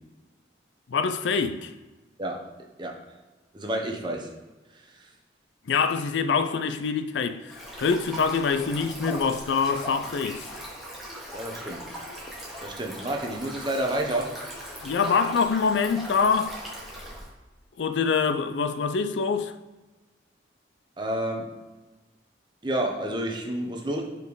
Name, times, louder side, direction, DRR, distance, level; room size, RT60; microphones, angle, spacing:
voice 1, 0.9-1.7 5.7-10.6 14.8-16.6 17.8-19.5, left 5 dB, 80° left, 0.4 m, -25 dB
voice 2, 3.5-4.3 5.0-5.1 11.3-11.8 12.6-14.3 21.0-21.5 22.6-24.0, right 1 dB, 25° right, 0.9 m, -29 dB
Stream, 7.5-17.3, equal, ahead, 1.4 m, -39 dB
5.3 x 4.3 x 4.8 m
head